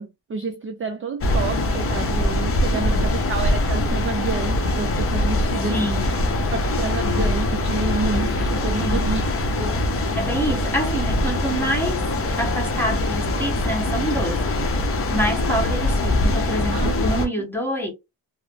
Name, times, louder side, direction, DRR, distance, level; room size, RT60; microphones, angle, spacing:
voice 1, 0.0-5.8 6.5-9.3 9.6-9.7 16.7-17.5, right 4 dB, 30° right, 0.4 m, -29 dB
sound 1, 1.2-17.3, left 1 dB, 30° left, 0.7 m, -23 dB
voice 2, 2.8-3.2 5.7-6.3 8.8-9.2 10.1-12.0 12.4-17.9, equal, 5° left, 1.2 m, -27 dB
3.0 x 2.0 x 2.6 m
cardioid pair, 80°, 44 cm